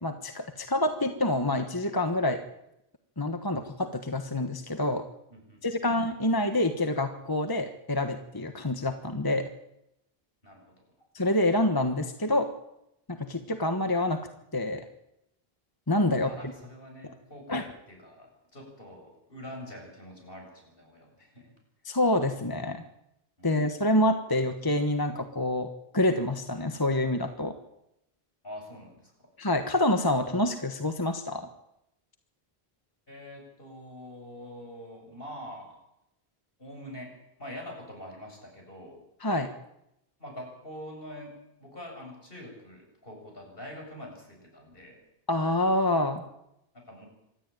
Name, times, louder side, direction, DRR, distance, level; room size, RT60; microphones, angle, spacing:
voice 1, 0.0-2.4 3.2-5.0 5.6-9.5 11.1-12.5 13.1-14.2 14.5-14.9 15.9-16.3 17.0-17.1 17.5-17.6 21.8-22.8 23.4-27.6 29.4-31.5 39.2-39.5 45.3-46.2, left 1 dB, 20° left, 7 dB, 1.4 m, -27 dB
voice 2, 5.3-5.8 10.4-10.7 16.2-21.5 23.4-23.8 28.4-29.3 33.1-35.8 36.6-37.1 37.4-39.0 40.2-45.0 46.7-47.1, left 1 dB, 60° left, 1 dB, 8.1 m, -45 dB
25.5 x 13.5 x 9.3 m, 0.82 s
omnidirectional pair, 1.0 m